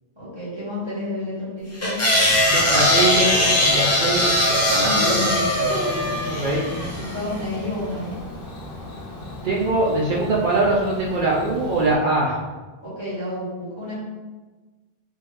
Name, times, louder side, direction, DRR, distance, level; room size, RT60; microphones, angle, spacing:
voice 1, 0.1-2.0 4.7-5.5 7.0-8.1 12.8-14.0, left 2 dB, 25° right, -9 dB, 1.5 m, -30 dB
sound 1, 1.8-7.2, left 1 dB, 20° left, 0.5 m, -20 dB
Bird / Cricket, 2.2-11.9, left 1 dB, 60° left, 0.9 m, -32 dB
voice 2, 2.5-3.4 3.7-4.3 4.7-5.2 6.3-6.6 9.4-12.4, right 2 dB, 60° right, -4 dB, 0.7 m, -22 dB
3.7 x 3.0 x 2.6 m, 1.3 s
omnidirectional pair, 1.0 m